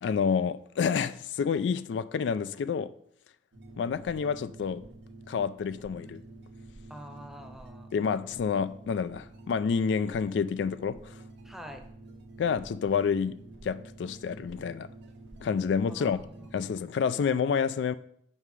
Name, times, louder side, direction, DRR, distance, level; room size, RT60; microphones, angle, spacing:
voice 1, 0.0-2.9 3.8-4.8 5.3-6.2 7.9-11.2 12.4-13.3 13.6-14.9 15.4-16.2 16.5-17.9, left 6 dB, 80° left, 0.3 m, -28 dB
sound 1, 3.5-16.8, right 2 dB, 80° right, 1.1 m, -49 dB
voice 2, 6.9-8.0 11.4-11.8 15.9-16.8, equal, ahead, 0.7 m, -46 dB
6.6 x 5.5 x 4.7 m
head